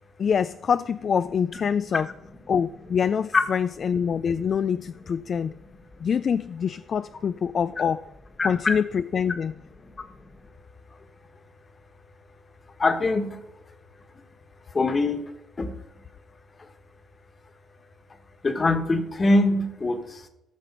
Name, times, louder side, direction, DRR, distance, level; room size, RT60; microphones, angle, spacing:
voice 1, 0.2-2.1 2.5-5.5 6.0-8.1 8.4-9.5, left 7 dB, 50° left, 13 dB, 0.3 m, -25 dB
voice 2, 8.4-8.7 12.8-13.4 14.7-15.2 15.6-15.7 18.4-20.0, left 2 dB, 35° left, 8 dB, 1.4 m, -22 dB
14.0 x 6.1 x 5.4 m, 0.90 s
cardioid pair, 90°, 0 cm